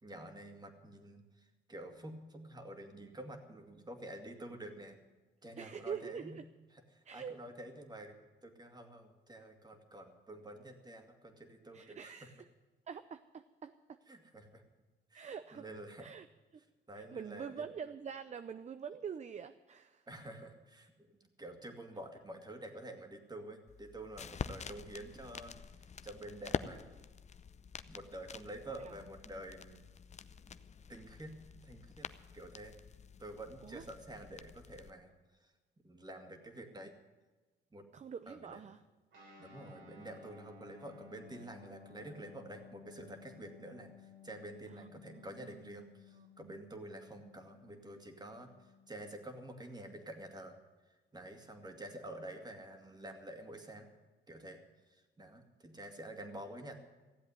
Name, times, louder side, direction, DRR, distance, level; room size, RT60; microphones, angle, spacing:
voice 1, 0.0-5.0 5.4-6.4 6.7-12.1 14.1-14.6 15.1-16.1 16.9-17.6 20.1-26.9 27.9-29.9 30.9-32.1 32.3-32.7 33.2-35.1 35.4-35.5 35.8-36.9 37.7-37.9 38.3-38.6 39.4-50.6 51.1-53.9 54.3-56.8, right 1 dB, 20° right, 5 dB, 2.4 m, -49 dB
voice 2, 5.6-6.5 7.0-7.3 11.7-12.5 12.9-14.0 15.1-15.7 16.0-16.3 16.5-16.6 17.0-20.1 28.8-28.9 33.6-33.8 37.9-38.8 44.7-45.7 46.1-46.3, right 7 dB, 35° right, 11 dB, 0.6 m, -45 dB
sound 1, 23.7-34.9, left 6 dB, 35° left, 0.6 m, -46 dB
Guitar, 39.1-49.0, left 6 dB, 80° right, 4.9 m, -57 dB
15.5 x 7.9 x 9.7 m, 1.3 s
cardioid pair, 90°, 20 cm